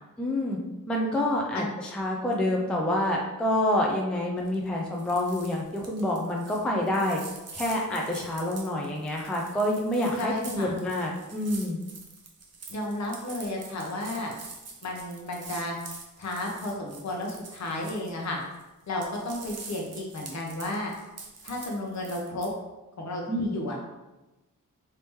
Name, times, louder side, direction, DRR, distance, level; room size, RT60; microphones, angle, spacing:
voice 1, 0.2-0.6 0.9-7.2 7.5-11.8 23.3-23.6, left 1 dB, 5° left, -1 dB, 0.3 m, -27 dB
sound 1, 4.4-4.7 4.9-18.6 18.9-22.5, right 4 dB, 50° right, 0.6 m, -45 dB
voice 2, 10.2-10.7 12.7-14.3 14.8-15.8 16.2-18.4 18.9-20.9 21.4-22.5 23.0-23.8, left 1 dB, 55° left, -1 dB, 0.8 m, -33 dB
3.4 x 2.8 x 3.0 m, 1.0 s
wide cardioid pair, 145°, 34 cm